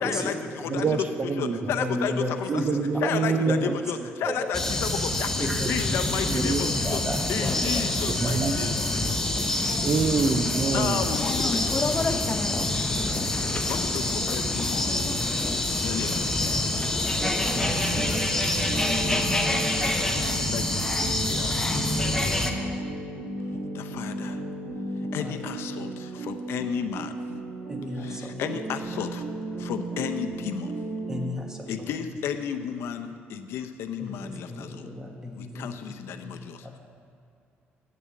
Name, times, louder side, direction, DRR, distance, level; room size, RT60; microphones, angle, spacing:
voice 1, 0.0-7.0 7.3-9.2 10.7-11.7 13.6-15.1 15.7-16.8 18.9-22.8 23.7-24.4 25.1-27.2 27.9-29.2 29.6-30.7 31.7-34.9 35.3-36.8, left 8 dB, 80° left, 8 dB, 0.6 m, -33 dB
voice 2, 0.7-1.7 2.5-3.8 6.3-6.8 8.1-9.0 9.8-11.1, right 4 dB, 35° right, 9 dB, 0.5 m, -26 dB
voice 3, 1.6-3.1 3.6-3.7 4.2-4.3 5.4-6.0 6.8-7.9 8.2-8.5 9.6-10.0 25.2-25.3 27.7-28.3 31.1-31.9 34.0-35.8 36.2-36.3, equal, 15° right, 2 dB, 1.3 m, -33 dB
sound 1, 4.5-22.5, left 1 dB, 10° left, 0.8 m, -27 dB
sound 2, 5.8-18.2, left 4 dB, 30° left, 0.5 m, -35 dB
sound 3, 17.2-31.3, right 3 dB, 75° right, 1.4 m, -35 dB
8.5 x 6.9 x 7.5 m, 2.5 s
cardioid pair, 115°, 4 cm